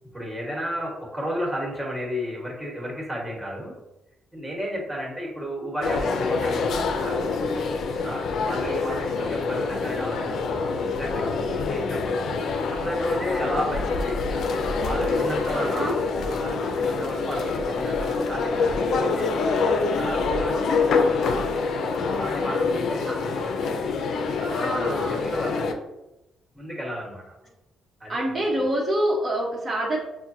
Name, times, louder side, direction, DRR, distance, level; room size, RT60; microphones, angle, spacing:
voice 1, 0.0-3.8 4.3-7.4 8.0-12.3 12.5-14.5 14.8-15.9 16.2-19.5 19.9-21.4 22.1-23.5 24.4-25.8 26.5-27.4 28.0-28.7, equal, 10° right, -2 dB, 1.4 m, -33 dB
sound 1, 5.8-25.7, left 4 dB, 70° left, 0.5 m, -26 dB
voice 2, 15.5-16.0 22.1-22.2 23.0-23.2 24.6-25.2 28.1-30.0, right 1 dB, 40° right, -4 dB, 0.9 m, -26 dB
5.9 x 2.2 x 2.7 m, 0.92 s
cardioid pair, 90°, 0 cm